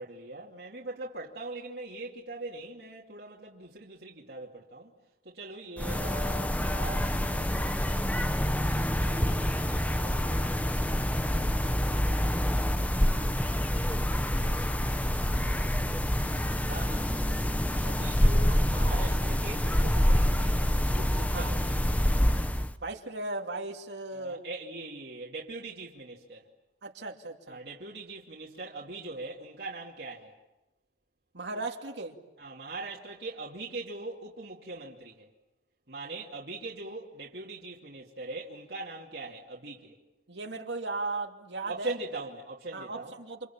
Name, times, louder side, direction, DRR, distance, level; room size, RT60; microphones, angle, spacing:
voice 1, 0.0-4.9 5.2-8.1 9.0-12.3 16.7-17.2 17.8-21.8 24.1-26.5 27.5-30.3 32.4-35.3 35.9-40.0 41.6-43.1, right 2 dB, 65° right, 2.7 m, -42 dB
sound 1, 5.8-22.7, equal, 10° left, 0.9 m, -27 dB
voice 2, 22.8-24.4 26.8-27.6 31.3-32.2 40.3-41.9 42.7-43.5, right 3 dB, 80° right, 2.6 m, -36 dB
29.0 x 27.0 x 7.4 m
head